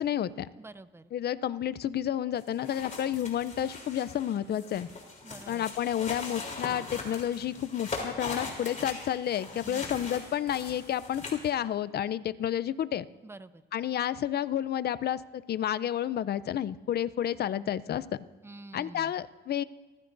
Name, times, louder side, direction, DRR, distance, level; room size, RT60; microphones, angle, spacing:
voice 1, 0.0-0.5 1.1-4.9 5.5-13.0 13.7-18.0 18.7-19.6, left 10 dB, 55° left, 16 dB, 0.6 m, -30 dB
voice 2, 0.6-1.1 5.2-5.6 9.6-9.9 13.2-13.6 18.4-19.1, right 2 dB, 10° right, 14 dB, 0.6 m, -47 dB
sound 1, 2.4-11.5, left 3 dB, 40° left, 3.4 m, -40 dB
29.0 x 15.0 x 2.6 m, 1.3 s
cardioid pair, 90°, 20 cm